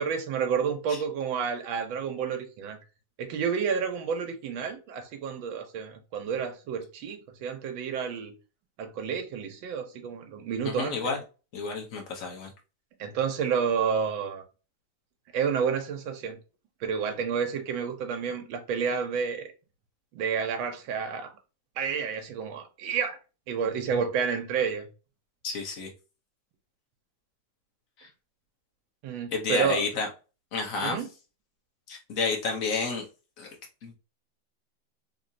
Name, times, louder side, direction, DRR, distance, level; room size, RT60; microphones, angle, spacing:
voice 1, 0.0-2.8 3.2-8.3 8.8-11.0 13.0-14.4 15.3-16.4 16.8-19.4 20.1-21.3 21.8-23.2 23.5-24.9 29.0-29.8 30.8-31.1, right 6 dB, 90° right, 1.6 m, -30 dB
voice 2, 10.6-11.2 11.5-12.5 23.9-24.0 25.4-25.9 28.0-28.1 29.3-30.1 30.5-31.0 31.9-33.0 33.4-33.5 33.8-33.9, left 4 dB, 50° left, 1.3 m, -30 dB
3.8 x 2.9 x 2.6 m
omnidirectional pair, 2.1 m